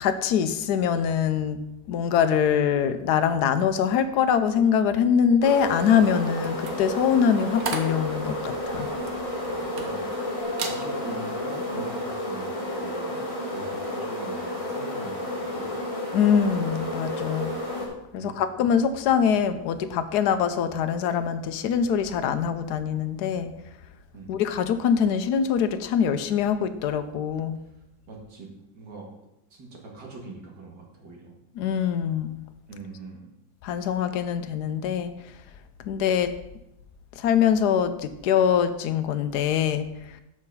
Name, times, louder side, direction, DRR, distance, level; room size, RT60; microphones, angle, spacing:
voice 1, 0.0-1.6 1.9-8.9 16.1-17.6 18.1-23.5 24.3-27.6 31.6-32.4 33.6-35.1 35.8-36.3 37.2-39.9, left 8 dB, 75° left, 10 dB, 1.2 m, -23 dB
sound 1, 5.4-17.9, left 1 dB, 20° left, 1.8 m, -31 dB
sound 2, 6.4-10.2 10.5-10.8 11.3-11.6, right 4 dB, 60° right, 1.3 m, -36 dB
voice 2, 9.5-10.2 10.6-15.8 18.1-18.5 24.1-24.3 27.6-27.8 28.1-29.1 29.5-31.3 32.7-33.3, right 3 dB, 85° right, -1 dB, 2.3 m, -43 dB
sound 3, 10.4-15.2, equal, 20° right, 1.6 m, -45 dB
6.6 x 6.2 x 5.5 m, 0.88 s
omnidirectional pair, 1.8 m